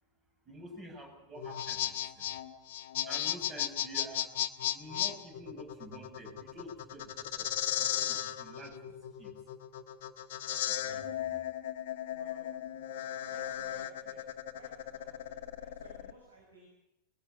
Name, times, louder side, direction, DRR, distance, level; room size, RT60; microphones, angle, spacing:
voice 1, 0.5-2.3 3.1-4.3 4.7-7.5 7.8-9.4 10.5-11.4, right 1 dB, 25° right, 3 dB, 7.3 m, -49 dB
sound 1, 1.4-16.1, left 11 dB, 55° left, 1.2 m, -36 dB
voice 2, 12.0-12.5 13.3-14.2 14.5-16.7, right 2 dB, 75° right, 0 dB, 6.0 m, -57 dB
21.5 x 16.0 x 9.4 m, 0.83 s
figure-of-eight pair, 90°, 0 cm